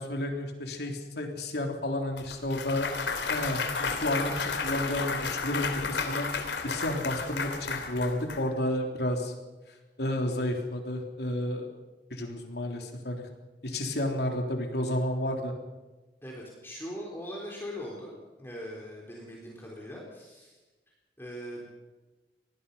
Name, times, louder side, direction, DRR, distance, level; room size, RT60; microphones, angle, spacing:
voice 1, 0.0-2.9 3.3-6.3 6.6-9.3 10.0-11.7 12.1-13.3 13.6-15.5, left 1 dB, 65° left, 3 dB, 3.6 m, -31 dB
Clapping / Cheering / Applause, 2.2-8.4, left 4 dB, 85° left, 3.1 m, -32 dB
voice 2, 16.2-18.1 18.4-20.6 21.2-21.7, equal, 15° left, -3 dB, 4.1 m, -41 dB
25.5 x 18.5 x 5.7 m, 1.2 s
head